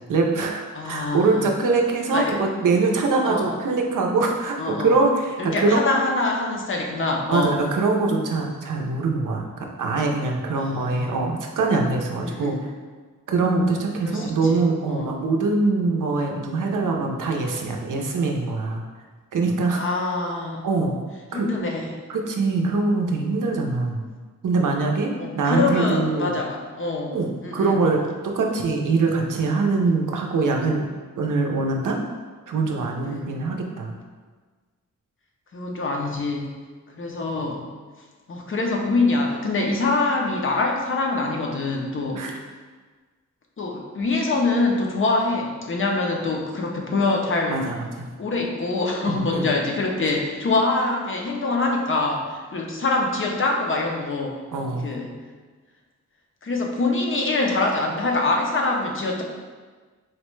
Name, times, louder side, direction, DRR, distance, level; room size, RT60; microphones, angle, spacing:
voice 1, 0.1-5.8 7.3-12.7 13.3-18.8 19.3-19.8 20.6-21.0 21.3-21.5 22.1-24.1 24.4-26.3 27.0-30.9 31.2-32.0 32.5-33.9 37.4-37.5 42.1-42.4 47.5-48.1 49.1-49.6 54.5-54.9, right 3 dB, 75° right, 1 dB, 0.5 m, -23 dB
voice 2, 0.7-1.5 2.1-2.3 3.2-3.5 4.6-4.9 5.4-7.6 10.6-11.2 12.2-12.7 14.0-14.6 14.9-15.1 19.8-20.6 21.3-21.9 25.2-27.8 33.0-33.3 35.5-36.6 37.0-37.7 38.3-42.3 43.6-47.6 48.2-54.4 54.8-55.2 56.4-59.2, left 3 dB, 40° left, 0 dB, 0.5 m, -24 dB
4.1 x 2.1 x 3.0 m, 1.4 s
wide cardioid pair, 125°, 32 cm